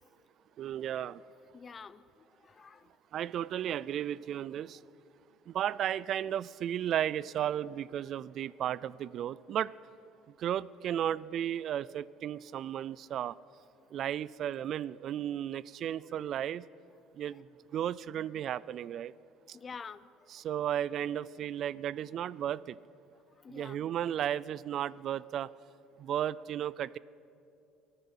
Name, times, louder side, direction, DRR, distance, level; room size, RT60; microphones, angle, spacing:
voice 1, 0.6-1.2 3.1-4.8 5.5-9.7 10.4-13.4 13.9-16.6 17.1-19.1 19.5-19.6 20.3-22.8 23.5-25.5 26.0-27.0, right 10 dB, 50° right, 21 dB, 0.3 m, -34 dB
voice 2, 1.5-3.0 16.1-16.2 17.3-17.4 19.5-20.1 23.4-23.9, left 5 dB, 30° left, 17 dB, 0.5 m, -48 dB
23.5 x 9.3 x 5.7 m, 2.6 s
cardioid pair, 130°, 0 cm